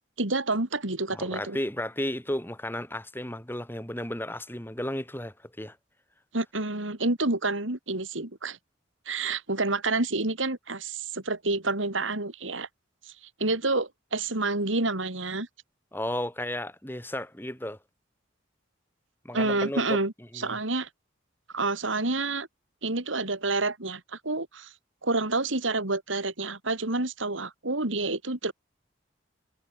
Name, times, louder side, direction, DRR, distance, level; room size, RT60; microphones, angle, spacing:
voice 1, 0.2-1.6 6.3-8.6 9.1-12.7 13.1-13.2 13.4-15.5 19.3-20.9 21.5-22.5 22.8-24.7 25.0-28.5, right 2 dB, 85° right, 3.4 m, -28 dB
voice 2, 1.1-5.8 15.9-17.8 19.2-19.8 20.3-20.6, left 1 dB, 10° left, 5.2 m, -33 dB
head